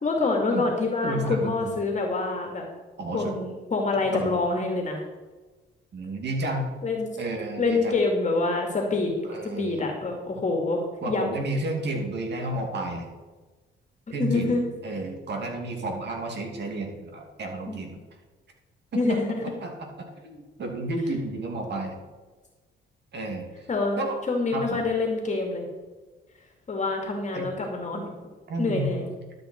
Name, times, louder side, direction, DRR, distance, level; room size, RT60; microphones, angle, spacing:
voice 1, 0.0-2.7 3.1-5.0 6.8-7.1 7.6-9.1 9.4-11.3 14.1-14.6 17.7-17.8 18.9-19.5 23.7-25.7 26.7-28.1 28.6-29.0, left 3 dB, 35° left, 1 dB, 2.2 m, -26 dB
voice 2, 1.0-1.7 3.0-3.4 4.1-4.4 5.9-6.7 7.2-8.0 9.2-9.8 11.0-13.1 14.1-18.0 18.9-19.2 19.4-22.0 23.1-23.5 24.0-24.2 24.5-24.8 27.3-27.5 28.5-29.1, right 2 dB, 60° right, 2 dB, 2.6 m, -31 dB
12.5 x 7.9 x 4.5 m, 1.3 s
cardioid pair, 90°, 20 cm